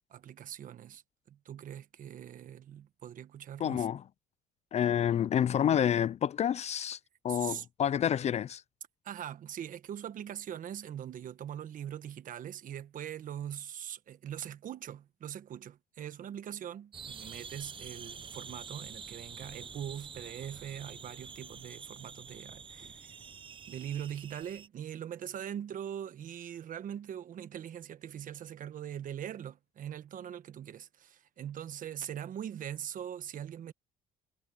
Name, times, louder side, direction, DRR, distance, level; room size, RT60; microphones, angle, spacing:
voice 1, 0.1-1.0 1.3-3.9 7.3-7.6 9.0-23.1 23.7-33.7, right 10 dB, 55° right, 1.3 m, -42 dB
voice 2, 3.6-4.0 4.7-7.0 7.2-8.6, left 9 dB, 40° left, 0.4 m, -28 dB
sound 1, 16.9-24.7, right 6 dB, 30° right, 0.8 m, -47 dB
cardioid pair, 110°, 17 cm